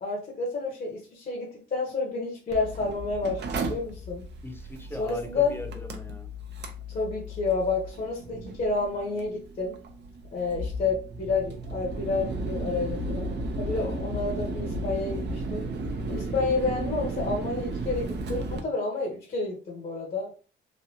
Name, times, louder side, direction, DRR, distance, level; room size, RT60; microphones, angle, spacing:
voice 1, 0.0-4.2 5.0-5.5 6.9-9.7 10.3-13.3 13.6-15.7 16.1-20.3, left 3 dB, 45° left, -2 dB, 1.0 m, -30 dB
Mechanical fan, 2.5-18.6, right 1 dB, 60° right, 0.7 m, -34 dB
voice 2, 4.4-6.3 13.7-14.0, left 1 dB, 10° left, 4 dB, 0.8 m, -40 dB
3.2 x 2.5 x 2.8 m, 0.38 s
cardioid pair, 90°, 20 cm